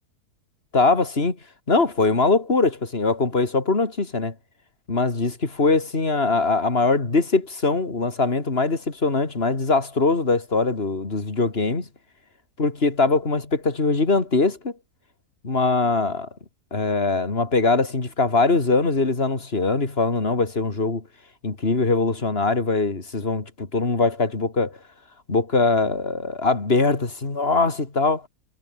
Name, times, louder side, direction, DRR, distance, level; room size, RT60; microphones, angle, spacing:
voice 1, 0.7-1.4 1.7-4.3 4.9-11.9 12.6-14.7 15.4-16.3 16.7-21.0 21.4-24.8 25.3-28.2, left 3 dB, 40° left, 3.3 m, -22 dB
omnidirectional pair, 1.7 m